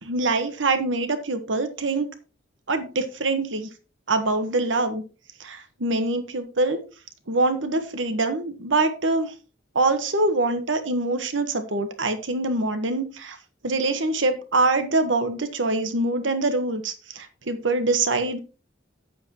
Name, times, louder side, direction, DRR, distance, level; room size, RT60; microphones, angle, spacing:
voice 1, 0.0-2.1 2.7-3.7 4.1-5.0 5.4-6.8 7.3-9.3 9.7-13.4 13.6-18.4, right 2 dB, 90° right, 8 dB, 1.4 m, -24 dB
10.0 x 8.5 x 3.0 m, 0.34 s
head